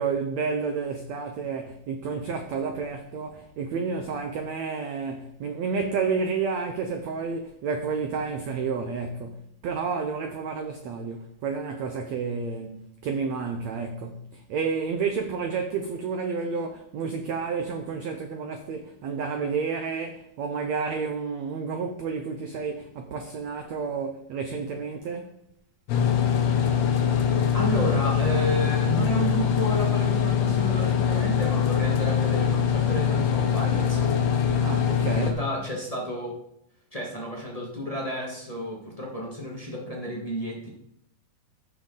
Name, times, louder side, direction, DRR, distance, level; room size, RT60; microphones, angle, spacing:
voice 1, 0.0-25.4 34.6-35.3, right 5 dB, 85° right, 1.5 m, -30 dB
sound 1, 25.9-35.3, left 7 dB, 90° left, 3.3 m, -23 dB
voice 2, 27.5-34.2 35.1-36.4 36.9-40.7, equal, 70° left, 0.3 m, -31 dB
14.5 x 6.4 x 3.9 m
omnidirectional pair, 4.3 m